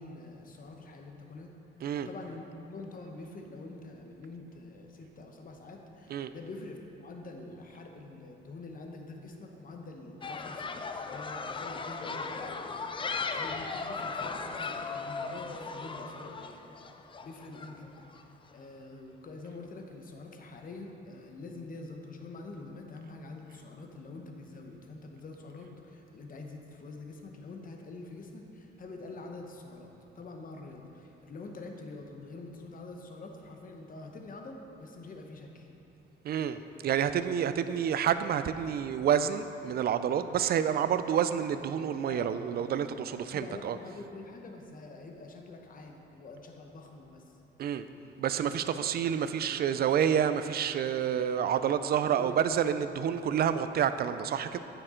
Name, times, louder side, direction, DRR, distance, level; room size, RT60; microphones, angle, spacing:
voice 1, 0.0-1.5 1.9-16.6 17.2-35.7 42.1-42.4 43.2-47.4 52.1-52.6, left 3 dB, 45° left, 3 dB, 1.0 m, -46 dB
sound 1, 10.2-18.2, left 4 dB, 25° left, 0.4 m, -37 dB
voice 2, 36.2-43.8 47.6-47.9 48.2-54.6, right 8 dB, 50° right, 11 dB, 0.4 m, -29 dB
9.2 x 6.7 x 3.8 m, 3.0 s
cardioid pair, 90°, 20 cm